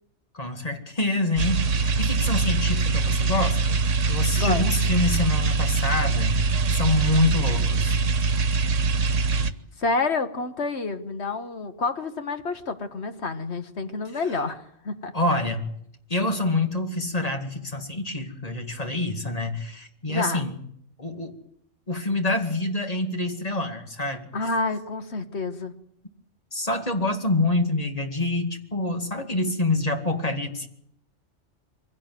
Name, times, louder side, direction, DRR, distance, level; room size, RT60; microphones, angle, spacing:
voice 1, 0.3-8.0 15.1-15.7 16.1-20.6 21.0-21.4 21.9-24.3 26.5-30.7, left 2 dB, 30° left, 5 dB, 2.3 m, -26 dB
sound 1, 1.4-9.5, right 4 dB, 90° right, 1.4 m, -23 dB
voice 2, 9.8-15.1 20.1-20.4 24.3-25.8, left 3 dB, 60° left, 8 dB, 1.8 m, -28 dB
23.5 x 16.5 x 9.3 m, 0.70 s
omnidirectional pair, 1.2 m